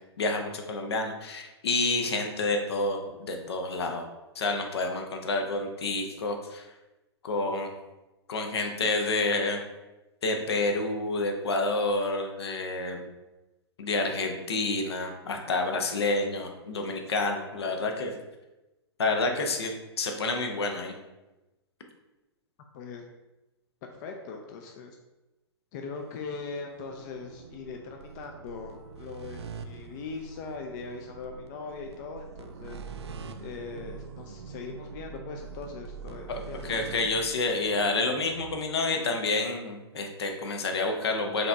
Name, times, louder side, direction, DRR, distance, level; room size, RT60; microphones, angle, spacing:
voice 1, 0.2-4.0 4.3-6.6 7.2-7.7 8.3-9.6 10.2-13.1 13.8-18.1 19.0-19.7 20.0-20.9 36.3-41.5, left 3 dB, 70° left, 4 dB, 0.8 m, -29 dB
voice 2, 22.7-23.1 24.0-25.0 25.7-32.8 33.4-36.7, left 4 dB, 45° left, 2 dB, 0.6 m, -40 dB
sound 1, 25.9-38.6, right 5 dB, 80° right, 0.5 m, -44 dB
5.1 x 2.9 x 3.4 m, 1.0 s
hypercardioid pair, 115°, 14 cm